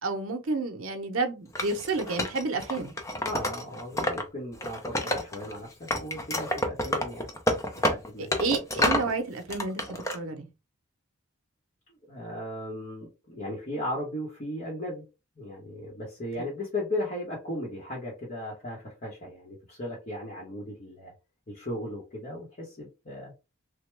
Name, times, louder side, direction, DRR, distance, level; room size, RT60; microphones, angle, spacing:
voice 1, 0.0-2.9 8.4-10.5, right 3 dB, 75° right, 0.7 m, -30 dB
Wood, 1.5-4.2 4.5-5.6 5.9-9.1 9.5-10.2, left 1 dB, 15° left, 0.4 m, -29 dB
voice 2, 3.2-8.3 11.9-15.0 15.4-21.1 21.5-23.3, left 1 dB, 40° left, 0.9 m, -36 dB
3.3 x 2.2 x 3.1 m
head